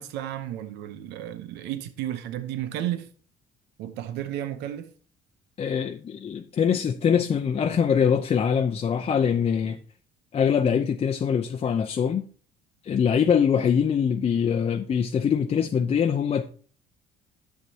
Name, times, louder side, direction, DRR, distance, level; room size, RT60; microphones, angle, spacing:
voice 1, 0.0-3.1 3.8-4.9, right 12 dB, 85° right, 0.8 m, -33 dB
voice 2, 5.6-9.8 10.3-12.2 12.8-16.5, left 7 dB, 35° left, 0.6 m, -23 dB
10.5 x 7.5 x 2.8 m
cardioid pair, 110°, 17 cm